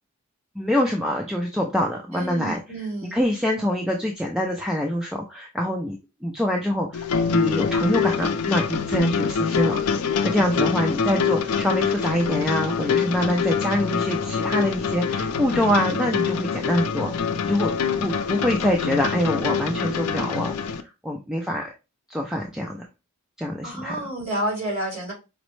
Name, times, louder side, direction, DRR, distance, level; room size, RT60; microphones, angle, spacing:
voice 1, 0.6-10.0 10.2-17.7 18.0-21.7 22.1-22.9 23.4-24.1, equal, 5° right, 0 dB, 0.3 m, -25 dB
voice 2, 2.1-3.2 23.6-25.1, right 1 dB, 30° right, -3 dB, 2.2 m, -29 dB
sound 1, 6.9-20.8, left 6 dB, 85° left, 0.4 m, -25 dB
5.1 x 2.0 x 3.1 m, 0.27 s
head